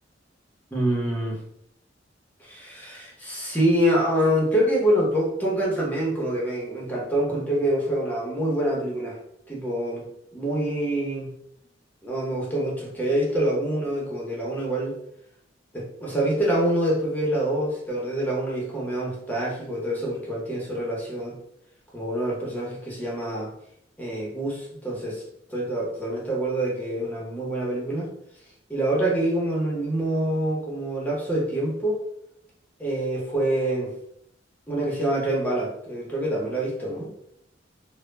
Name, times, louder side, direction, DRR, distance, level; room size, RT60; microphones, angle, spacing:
voice 1, 0.7-1.4 2.4-9.2 9.5-10.1 10.3-11.3 12.0-15.0 15.7-21.4 21.9-23.5 24.0-25.2 25.5-28.1 28.7-32.0 32.8-33.9 34.7-37.1, right 1 dB, 10° left, -4 dB, 0.7 m, -26 dB
2.1 x 2.0 x 3.1 m, 0.73 s
head